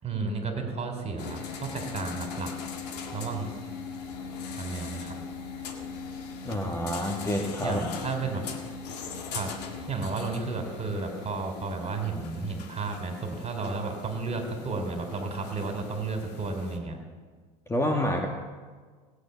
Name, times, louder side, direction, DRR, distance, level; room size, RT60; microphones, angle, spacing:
voice 1, 0.0-2.5 3.1-3.5 4.5-5.2 7.6-8.6 9.3-9.5 9.9-17.0, right 3 dB, 30° right, 4 dB, 3.9 m, -32 dB
sound 1, 1.2-16.8, left 5 dB, 80° left, 1.9 m, -40 dB
voice 2, 6.4-7.8 17.7-18.3, equal, 15° left, 2 dB, 1.8 m, -28 dB
18.0 x 8.5 x 7.0 m, 1.5 s
hypercardioid pair, 85°, 20 cm